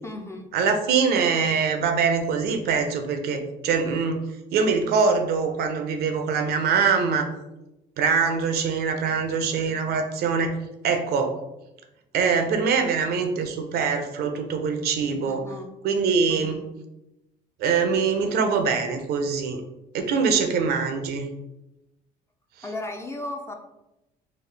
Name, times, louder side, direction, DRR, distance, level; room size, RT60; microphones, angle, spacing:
voice 1, 0.0-0.5 15.3-15.7 16.3-16.6 22.6-23.5, left 2 dB, 15° left, 3 dB, 0.4 m, -35 dB
voice 2, 0.5-7.3 8.0-10.6 10.8-11.4 12.1-15.4 15.8-16.6 17.6-19.6 19.9-21.3, right 5 dB, 70° right, 6 dB, 0.6 m, -23 dB
4.0 x 2.3 x 3.2 m, 0.94 s
cardioid pair, 110°, 17 cm